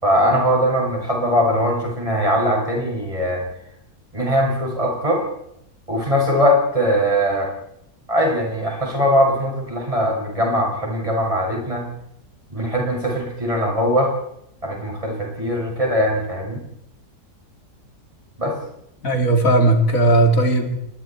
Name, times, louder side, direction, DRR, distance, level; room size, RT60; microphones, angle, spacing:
voice 1, 0.0-3.4 4.1-5.2 5.9-7.5 8.1-11.8 12.5-14.1 14.6-16.6 18.4-18.6, equal, 15° right, -1 dB, 6.7 m, -20 dB
voice 2, 19.0-20.8, right 2 dB, 45° left, 5 dB, 3.0 m, -16 dB
26.5 x 22.0 x 4.5 m, 0.77 s
omnidirectional pair, 1.9 m